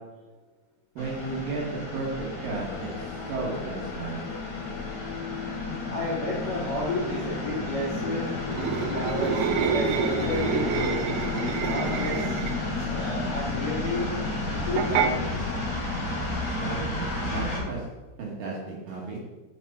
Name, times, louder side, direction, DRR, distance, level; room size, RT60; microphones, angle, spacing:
sound 1, 1.0-17.6, left 2 dB, 25° left, 1.9 m, -32 dB
voice 1, 1.0-4.3 16.6-17.8 18.2-19.2, right 3 dB, 65° right, -3 dB, 2.5 m, -33 dB
sound 2, 2.5-11.5, left 7 dB, 80° left, 2.9 m, -40 dB
voice 2, 5.9-8.3 8.9-11.1 11.6-14.1 14.5-15.4, left 2 dB, 55° left, -7 dB, 1.2 m, -32 dB
sound 3, 8.5-12.7 14.8-15.1, right 8 dB, 85° right, 2.9 m, -28 dB
6.9 x 6.1 x 5.3 m, 1.3 s
omnidirectional pair, 5.3 m